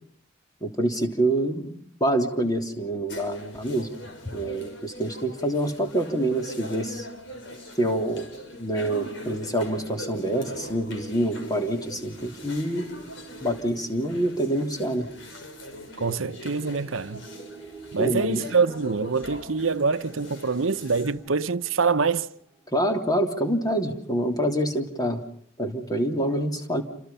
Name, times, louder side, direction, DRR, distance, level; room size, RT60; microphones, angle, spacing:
voice 1, 0.6-3.9 4.3-7.1 7.8-8.3 8.5-12.9 13.4-15.1 18.0-18.4 22.7-25.2 25.6-26.8, right 1 dB, 20° left, 3.3 m, -26 dB
sound 1, 3.1-21.1, left 1 dB, 65° left, 6.2 m, -42 dB
sound 2, 8.1-23.0, right 5 dB, 10° right, 3.8 m, -47 dB
voice 2, 16.0-17.2 17.9-22.3, right 4 dB, 85° right, 0.9 m, -25 dB
29.0 x 26.0 x 5.6 m
head